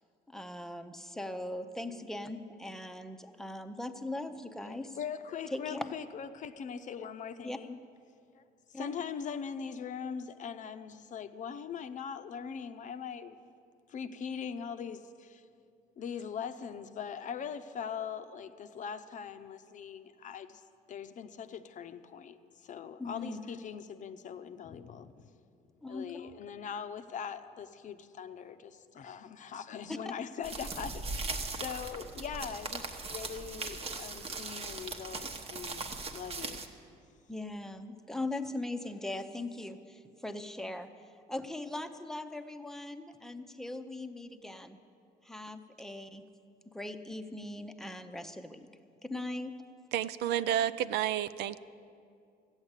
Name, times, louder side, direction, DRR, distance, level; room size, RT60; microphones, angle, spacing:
voice 1, 0.3-5.0 5.5-5.9 7.4-7.6 8.7-8.9 23.0-23.4 25.8-26.1 37.3-40.9 41.3-44.8 45.2-46.2 46.7-48.7 49.0-49.5, left 2 dB, 5° left, 0.7 m, -40 dB
voice 2, 4.6-7.8 8.3-8.4 8.7-13.5 13.9-15.4 16.0-20.6 20.9-25.3 25.9-36.7, left 7 dB, 50° left, 0.7 m, -41 dB
sound 1, 30.4-36.7, right 3 dB, 35° right, 1.0 m, -39 dB
voice 3, 49.9-51.6, right 10 dB, 80° right, 0.4 m, -30 dB
13.5 x 8.8 x 8.1 m
cardioid pair, 110°, 17 cm